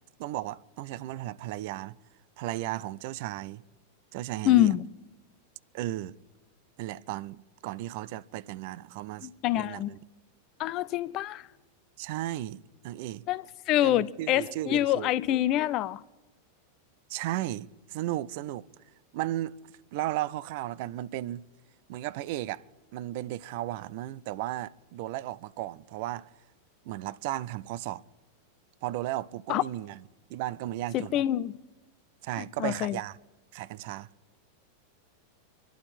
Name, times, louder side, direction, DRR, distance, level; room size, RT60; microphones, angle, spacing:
voice 1, 0.2-2.0 2.4-3.6 4.1-4.7 5.7-6.1 6.8-10.0 12.0-13.2 13.8-15.1 17.1-18.6 19.1-19.5 19.9-21.4 21.9-22.6 22.9-26.3 26.9-28.0 28.8-30.0 30.3-31.2 32.2-33.2 33.5-34.1, right 15 dB, 50° right, 0.4 m, -35 dB
voice 2, 4.4-4.9 9.2-9.9 10.6-11.5 13.3-16.0 29.5-29.6 30.9-31.5 32.4-33.0, left 13 dB, 40° left, 0.4 m, -26 dB
26.0 x 11.5 x 4.3 m
figure-of-eight pair, 90°, 0 cm